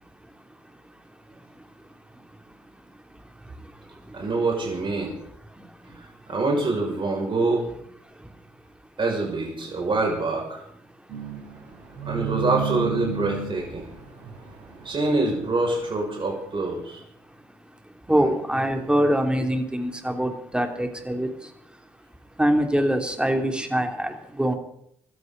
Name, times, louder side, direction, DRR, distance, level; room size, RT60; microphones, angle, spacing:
voice 1, 0.1-4.3 5.5-6.1 8.0-8.4 11.0-11.3 11.9-12.0 14.1-14.2 14.5-14.7 17.3-21.8 22.4-24.6, equal, 10° right, 4 dB, 3.3 m, -27 dB
voice 2, 4.1-5.1 6.0-7.7 9.0-10.6 12.1-13.9 14.8-17.0 18.1-18.2, right 3 dB, 40° right, -1 dB, 6.3 m, -25 dB
sound 1, 11.1-16.0, right 6 dB, 70° right, 7.5 m, -33 dB
25.0 x 13.5 x 4.1 m, 0.71 s
hypercardioid pair, 45°, 12 cm